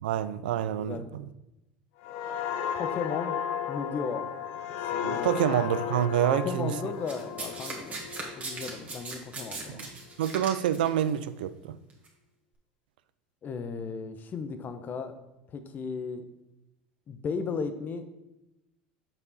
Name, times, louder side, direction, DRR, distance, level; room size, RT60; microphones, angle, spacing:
voice 1, 0.0-1.3 5.0-6.7 9.7-9.9 10.2-11.8, right 11 dB, 80° right, 0.4 m, -27 dB
voice 2, 0.8-1.2 2.7-3.4 3.7-4.3 4.8-5.4 6.3-8.1 8.4-9.9 13.4-15.1 15.5-16.2 17.1-18.1, left 5 dB, 40° left, 0.9 m, -35 dB
sound 1, 2.0-9.5 9.9-10.2, left 9 dB, 65° left, 0.6 m, -34 dB
Domestic sounds home sounds, 7.1-11.0 11.9-12.1, right 3 dB, 30° right, 2.1 m, -38 dB
7.1 x 5.3 x 4.1 m
hypercardioid pair, 80°, 5 cm